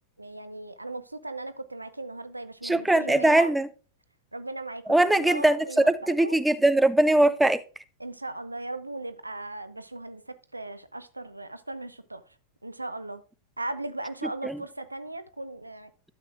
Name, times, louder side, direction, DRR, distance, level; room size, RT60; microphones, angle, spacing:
voice 1, 0.2-3.5 4.3-6.4 8.0-12.2 12.6-13.2 13.6-15.9, right 2 dB, 85° right, 0.6 m, -37 dB
voice 2, 2.6-3.7 4.9-7.6 14.4-14.6, right 1 dB, 5° right, 0.5 m, -21 dB
12.0 x 7.6 x 2.5 m
figure-of-eight pair, 90°, 0 cm